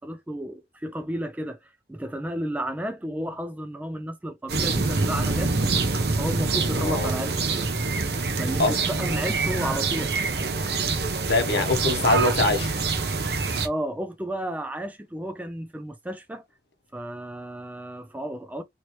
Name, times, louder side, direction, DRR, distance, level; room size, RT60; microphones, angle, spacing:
voice 1, 0.0-1.6 1.9-5.8 6.2-7.7 8.3-10.2 13.6-16.4 16.9-18.6, right 1 dB, 10° right, 0.3 m, -32 dB
sound 1, 4.5-13.7, right 3 dB, 60° right, 0.7 m, -25 dB
voice 2, 6.7-7.1 8.6-8.8 11.3-12.7, left 2 dB, 65° left, 0.8 m, -23 dB
3.0 x 2.9 x 3.0 m
head